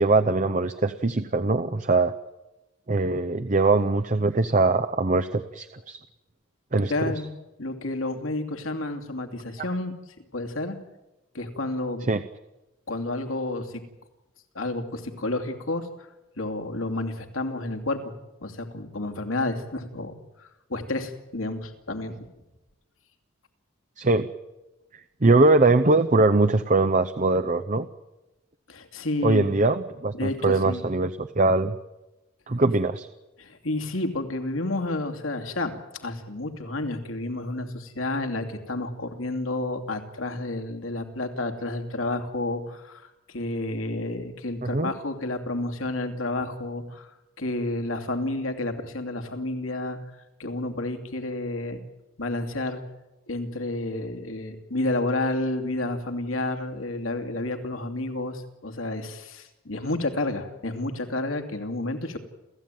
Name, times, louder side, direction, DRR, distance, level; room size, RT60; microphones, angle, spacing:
voice 1, 0.0-2.1 2.9-6.0 6.7-6.9 12.1-12.2 24.0-24.3 25.2-27.9 29.2-31.7 32.5-33.1 44.6-44.9, right 3 dB, 35° right, 10 dB, 0.7 m, -22 dB
voice 2, 6.9-7.3 7.6-9.9 10.3-10.8 11.3-12.1 12.9-13.8 14.5-15.9 16.4-18.1 18.4-22.3 28.7-29.6 30.1-30.9 33.4-50.0 50.4-51.8 52.2-52.8 53.3-62.2, left 2 dB, 75° left, 5 dB, 2.8 m, -30 dB
29.5 x 15.0 x 9.2 m, 1.0 s
head